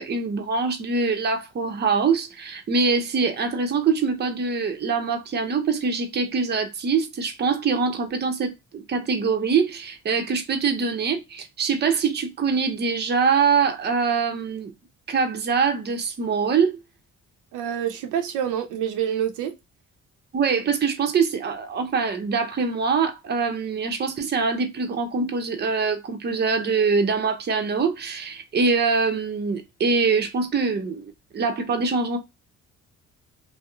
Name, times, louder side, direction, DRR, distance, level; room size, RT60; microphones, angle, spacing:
voice 1, 0.0-14.7 15.1-16.8 20.3-32.2, right 5 dB, 35° right, 0.6 m, -24 dB
voice 2, 17.5-19.6, right 9 dB, 85° right, 0.6 m, -27 dB
2.8 x 2.0 x 2.3 m
cardioid pair, 90°, 30 cm